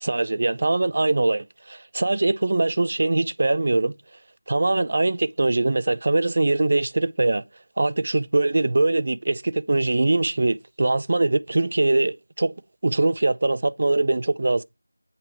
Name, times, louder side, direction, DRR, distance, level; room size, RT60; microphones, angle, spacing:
voice 1, 0.0-3.9 4.5-7.4 7.8-12.5 12.8-14.6, right 2 dB, 45° right, 0.4 m, -22 dB
8.1 x 3.3 x 5.8 m
figure-of-eight pair, 170°, 0 cm